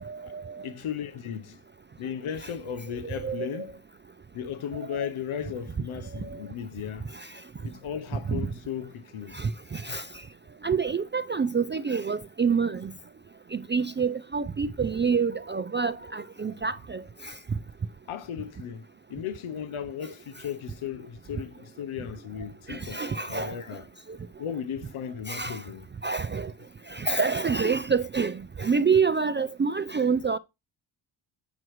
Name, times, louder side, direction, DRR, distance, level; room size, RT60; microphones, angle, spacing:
voice 1, 0.0-0.6 2.4-2.5 3.1-3.7 6.2-6.4 7.1-7.3 8.3-8.5 9.3-10.1 10.6-12.9 13.5-17.3 22.7-23.6 25.3-25.6 26.0-26.5 26.9-30.4, right 5 dB, 25° right, 0.4 m, -27 dB
voice 2, 0.6-1.6 2.0-3.8 4.3-7.1 7.6-9.4 9.9-10.0 18.1-23.9 24.4-25.9, left 8 dB, 75° left, 0.9 m, -36 dB
8.9 x 6.2 x 3.1 m
cardioid pair, 65°, 49 cm